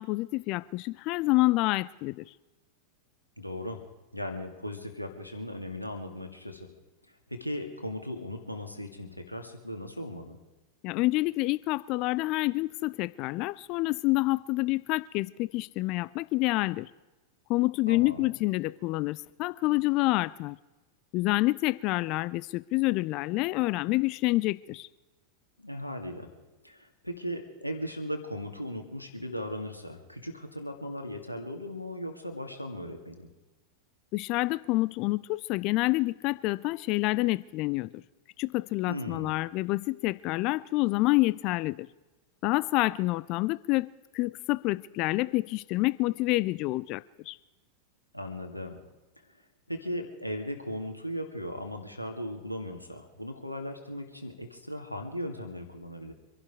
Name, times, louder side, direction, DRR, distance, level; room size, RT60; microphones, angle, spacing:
voice 1, 0.0-2.2 10.8-16.9 17.5-20.6 21.1-24.9 34.1-38.0 38.4-41.9 42.4-47.4, left 20 dB, 40° left, 0.4 m, -28 dB
voice 2, 3.4-3.8 4.1-6.7 7.3-10.4 17.9-18.3 25.6-26.3 26.6-33.3 38.9-39.4 48.1-48.8 49.7-56.1, equal, 90° left, 2.1 m, -37 dB
25.5 x 11.0 x 4.8 m
figure-of-eight pair, 90°, 0 cm